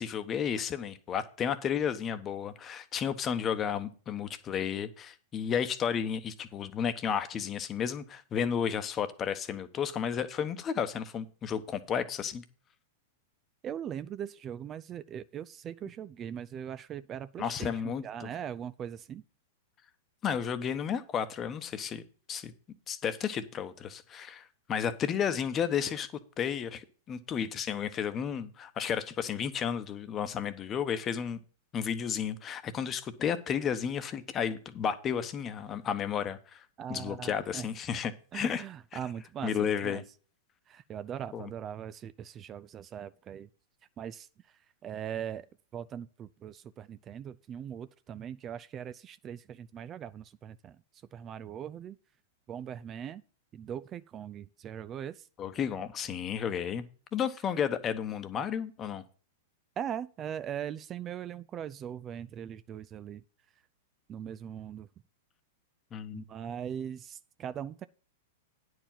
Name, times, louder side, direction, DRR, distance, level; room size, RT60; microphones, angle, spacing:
voice 1, 0.0-12.4 17.4-18.3 20.2-22.0 22.3-22.5 22.9-26.1 26.4-31.4 31.7-36.6 36.9-38.7 38.9-39.0 39.4-40.0 41.3-41.5 55.4-56.9 57.1-59.0 65.9-66.2, left 8 dB, 30° left, 1.0 m, -32 dB
voice 2, 13.6-19.2 36.8-37.7 38.3-40.0 40.7-43.5 44.0-44.3 44.8-45.5 45.7-50.8 51.1-52.0 52.5-53.2 53.5-55.3 59.8-63.2 64.1-64.9 66.1-67.9, right 9 dB, 30° right, 0.4 m, -40 dB
9.9 x 4.7 x 7.4 m
hypercardioid pair, 110°, 0 cm